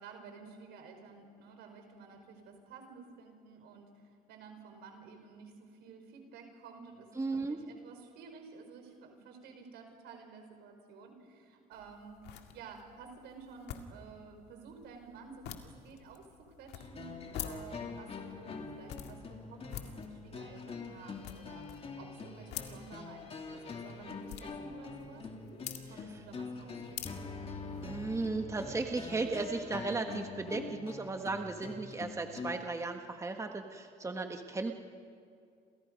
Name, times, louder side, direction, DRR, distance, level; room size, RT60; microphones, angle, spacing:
voice 1, 0.0-16.2 16.6-17.1 17.4-25.6 25.9-27.3, right 5 dB, 85° right, 4 dB, 5.0 m, -52 dB
voice 2, 7.2-7.6 27.8-34.7, right 3 dB, 15° right, 5 dB, 1.5 m, -35 dB
sound 1, 11.7-28.2, left 10 dB, 85° left, 2.0 m, -49 dB
sound 2, 16.8-32.6, left 4 dB, 35° left, 2.7 m, -44 dB
29.5 x 27.5 x 5.3 m, 2.3 s
cardioid pair, 110°, 17 cm